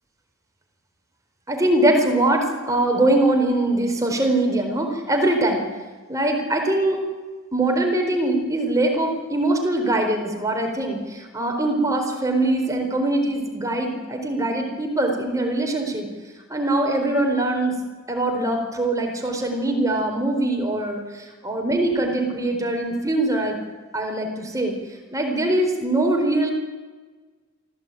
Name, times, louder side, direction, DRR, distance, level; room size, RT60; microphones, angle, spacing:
voice 1, 1.5-5.6 6.1-7.0 7.5-16.1 16.5-17.8 18.1-23.6 23.9-24.7 25.1-26.5, right 1 dB, 15° right, 2 dB, 4.3 m, -22 dB
24.0 x 15.5 x 9.1 m, 1.3 s
head